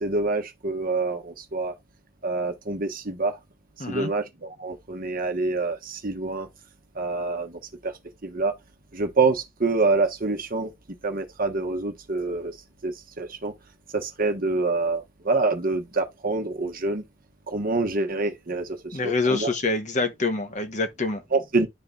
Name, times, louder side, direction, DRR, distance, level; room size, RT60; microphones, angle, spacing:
voice 1, 0.0-1.7 2.2-3.4 3.9-6.5 7.0-7.9 8.2-8.5 8.9-10.7 11.0-12.5 12.8-13.5 13.9-17.0 17.5-19.5 21.3-21.7, right 3 dB, 40° right, 1.2 m, -26 dB
voice 2, 3.8-4.1 18.9-21.2, left 3 dB, 35° left, 1.0 m, -26 dB
11.5 x 3.9 x 2.4 m
head